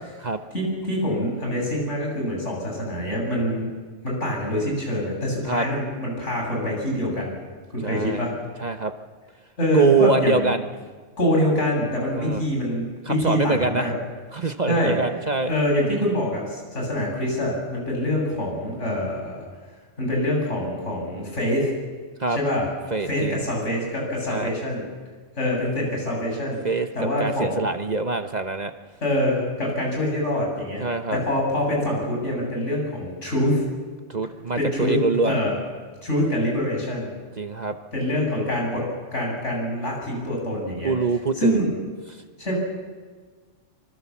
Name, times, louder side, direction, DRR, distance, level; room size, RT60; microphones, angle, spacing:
voice 1, 0.5-3.7 4.0-7.3 7.7-8.3 9.6-10.5 11.2-13.9 14.7-15.0 15.5-19.4 20.0-21.7 22.3-22.7 23.1-24.8 25.4-26.6 26.9-27.6 29.0-33.6 34.6-35.0 35.3-35.5 36.0-37.1 37.9-40.9 41.4-41.8 42.4-42.5, left 1 dB, 75° left, -1 dB, 7.9 m, -25 dB
voice 2, 7.8-8.2 8.6-8.9 9.7-10.6 12.1-12.4 13.1-13.9 14.3-15.5 22.2-22.4 22.9-23.4 24.3-24.5 26.6-26.9 27.2-28.7 30.8-31.2 34.1-35.4 37.4-37.8 40.8-41.6, right 4 dB, 40° right, 8 dB, 1.0 m, -24 dB
25.0 x 24.5 x 7.2 m, 1.5 s
omnidirectional pair, 1.3 m